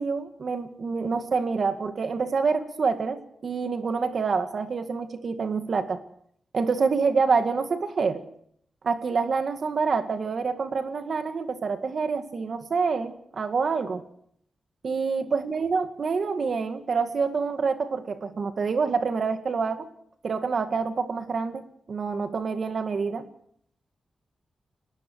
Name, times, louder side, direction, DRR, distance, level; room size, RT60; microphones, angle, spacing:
voice 1, 0.0-6.0 6.5-8.3 8.8-14.0 14.8-19.9 20.2-23.3, right 5 dB, 50° right, 8 dB, 2.0 m, -27 dB
30.0 x 19.0 x 4.7 m, 0.67 s
wide cardioid pair, 155°, 0 cm